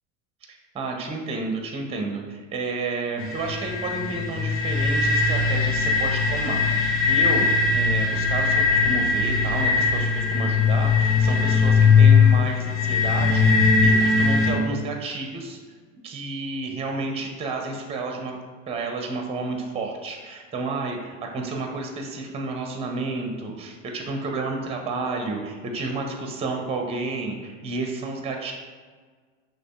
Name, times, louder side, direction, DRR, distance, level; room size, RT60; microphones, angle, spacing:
voice 1, 0.7-7.5 7.7-15.6 16.0-18.4 18.7-28.5, right 3 dB, 15° right, 2 dB, 0.6 m, -31 dB
sound 1, 3.2-14.5, left 4 dB, 65° left, 1.1 m, -20 dB
6.1 x 2.5 x 2.3 m, 1.5 s
hypercardioid pair, 85°, 40 cm